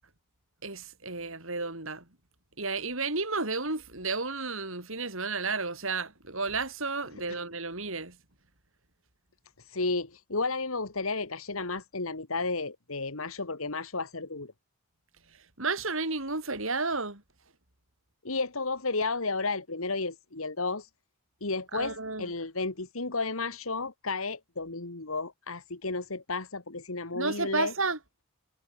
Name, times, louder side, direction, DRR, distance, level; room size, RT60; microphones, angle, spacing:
voice 1, 0.6-2.1 2.6-8.2 15.6-17.2 21.7-22.3 27.1-28.0, right 3 dB, 65° right, 6.0 m, -32 dB
voice 2, 9.7-14.5 18.2-20.9 21.4-27.7, left 3 dB, 75° left, 2.1 m, -32 dB
head